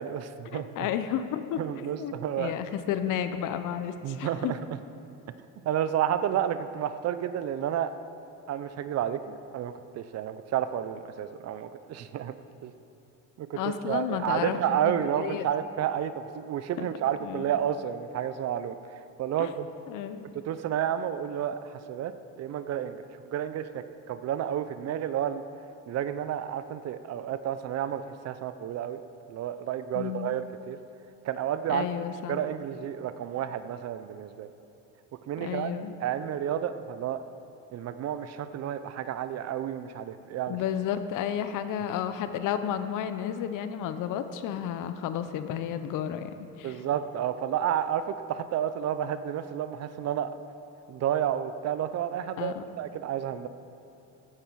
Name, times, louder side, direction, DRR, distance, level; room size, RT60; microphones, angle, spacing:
voice 1, 0.0-0.9 1.6-2.5 4.0-4.6 5.6-7.9 8.5-12.3 12.6-12.7 13.4-19.7 20.3-25.4 25.9-29.0 29.3-30.8 31.2-31.9 32.3-34.5 35.3-35.7 36.0-37.2 37.7-40.6 46.6-50.3 50.9-53.5, right 10 dB, 50° right, 12 dB, 0.6 m, -31 dB
voice 2, 0.5-4.5 13.6-15.4 16.8-16.9 17.2-17.4 19.4-19.5 19.9-20.3 29.9-30.3 31.7-32.4 35.4-35.9 40.5-46.8 52.4-52.6, left 9 dB, 65° left, 10 dB, 0.9 m, -32 dB
14.5 x 9.0 x 4.7 m, 2.9 s
cardioid pair, 115°, 34 cm